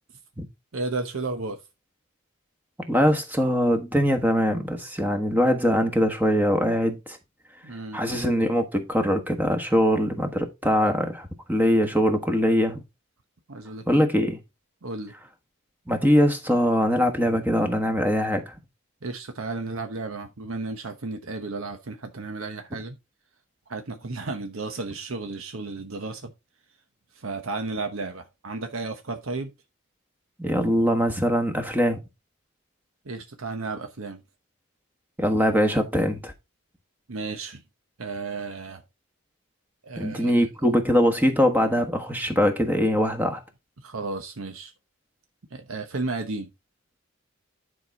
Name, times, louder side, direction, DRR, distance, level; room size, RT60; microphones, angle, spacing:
voice 1, 0.7-1.6 7.6-8.0 13.5-14.0 14.8-15.1 19.0-23.0 23.7-26.3 27.1-29.5 33.0-34.2 37.1-37.6 38.0-38.8 39.8-40.4 43.8-44.7 45.5-46.5, right 3 dB, 65° right, 0.9 m, -33 dB
voice 2, 2.9-7.2 7.9-12.8 13.9-14.4 15.9-18.5 30.4-32.0 35.2-36.3 40.0-43.4, equal, 10° right, 1.2 m, -22 dB
10.0 x 4.7 x 4.0 m
head